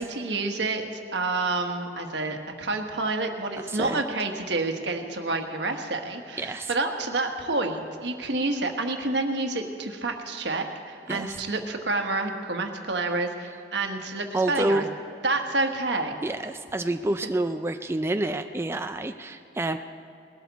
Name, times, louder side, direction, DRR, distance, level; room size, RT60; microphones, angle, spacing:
voice 1, 0.0-14.8 15.2-16.2 17.2-17.3, right 2 dB, 75° right, 4 dB, 1.3 m, -29 dB
voice 2, 3.7-4.0 6.4-6.7 11.1-11.4 14.3-14.8 16.2-19.8, right 2 dB, 15° right, 7 dB, 0.3 m, -28 dB
20.0 x 12.5 x 4.1 m, 2.6 s
head